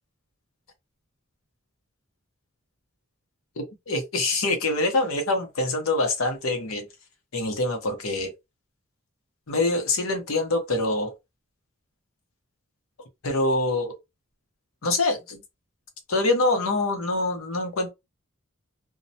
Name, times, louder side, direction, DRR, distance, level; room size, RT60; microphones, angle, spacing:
voice 1, 3.9-6.9 7.3-8.3 9.5-11.1 13.2-13.9 14.8-15.4 16.1-17.9, left 2 dB, 85° left, 0.8 m, -25 dB
2.2 x 2.0 x 2.6 m
head